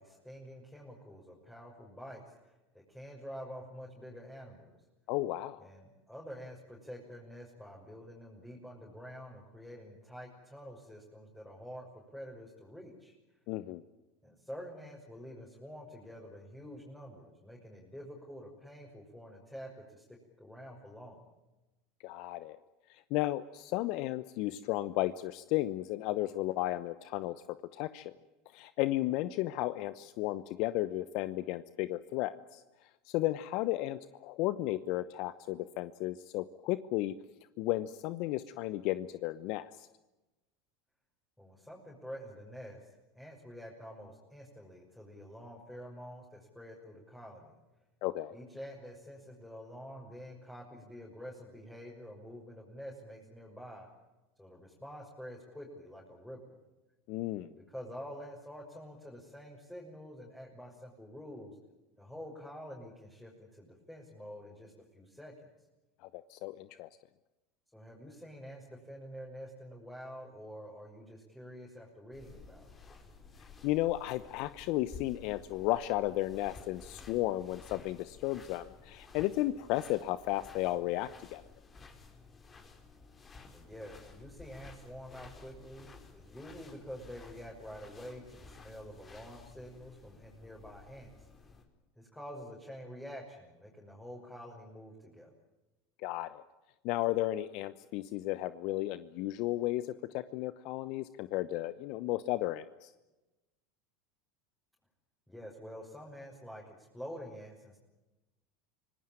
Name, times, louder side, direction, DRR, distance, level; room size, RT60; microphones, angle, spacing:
voice 1, 0.0-2.5 2.9-4.8 5.6-13.1 14.2-20.0 20.4-21.2 41.4-42.9 43.1-47.6 48.3-53.9 54.4-56.6 57.4-61.5 62.0-65.5 67.7-72.7 83.5-91.3 92.0-95.3 105.3-107.8, equal, 5° left, -3 dB, 6.3 m, -48 dB
voice 2, 5.1-5.6 13.5-13.8 22.0-22.6 23.1-27.3 27.7-28.1 28.5-32.6 33.1-37.1 37.6-39.9 48.0-48.4 57.1-57.5 66.1-66.9 73.6-81.4 96.0-96.4 96.8-99.9 100.1-102.9, left 16 dB, 60° left, 15 dB, 0.9 m, -34 dB
sound 1, 72.1-91.6, left 4 dB, 25° left, 4.5 m, -54 dB
26.0 x 18.5 x 9.1 m, 1.0 s
hypercardioid pair, 90°, 0 cm